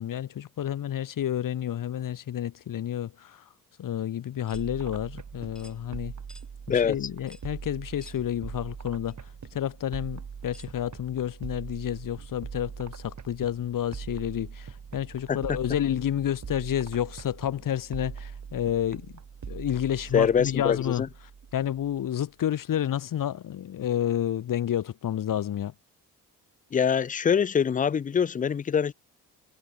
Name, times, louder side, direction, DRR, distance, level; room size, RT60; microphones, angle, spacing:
voice 1, 0.0-3.4 3.8-6.1 6.7-19.1 19.5-21.0 21.5-25.7, left 10 dB, 60° left, 1.2 m, -30 dB
sound 1, 4.5-4.7 5.5-5.8 6.3-6.5 7.3-7.5 8.0-8.2 9.0-9.1 10.5-10.7, equal, ahead, 6.2 m, -52 dB
sound 2, 4.5-22.1, right 6 dB, 50° right, 6.1 m, -42 dB
voice 2, 6.7-7.1 15.3-15.6 20.1-21.1 26.7-28.9, left 7 dB, 20° left, 0.4 m, -24 dB
cardioid pair, 75°, 38 cm